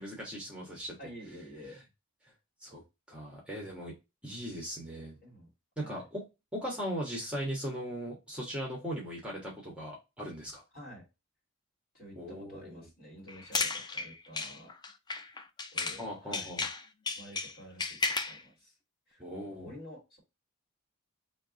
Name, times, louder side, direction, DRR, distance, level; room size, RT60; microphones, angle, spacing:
voice 1, 0.0-0.9 2.6-2.8 3.1-3.9 4.2-5.2 5.8-6.2 6.5-10.6 12.2-12.9 16.0-16.6 19.2-19.7, equal, 5° right, -3 dB, 1.3 m, -38 dB
voice 2, 1.0-1.8 5.2-5.5 5.8-6.0 10.7-11.1 11.9-14.7 15.7-16.5 17.2-18.7 19.1-19.2 19.5-20.2, equal, 45° left, -2 dB, 2.4 m, -49 dB
sound 1, 13.3-16.1 16.3-18.4, left 4 dB, 20° left, 0.4 m, -34 dB
3.5 x 3.2 x 3.8 m, 0.24 s
head